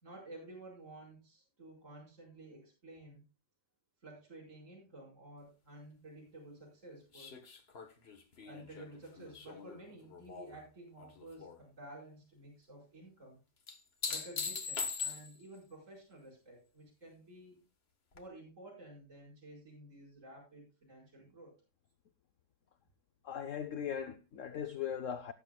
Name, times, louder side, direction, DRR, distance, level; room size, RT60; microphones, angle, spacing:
voice 1, 0.0-3.2 4.0-7.4 8.4-13.4 14.1-17.6 18.1-21.6, right 1 dB, 40° right, 5.2 m, -53 dB
sound 1, 7.1-10.6 11.0-11.6 13.7-15.6 18.1-18.2, left 5 dB, 40° left, 1.3 m, -41 dB
voice 2, 23.2-25.3, left 8 dB, 60° left, 0.8 m, -39 dB
18.5 x 8.9 x 2.3 m
omnidirectional pair, 2.0 m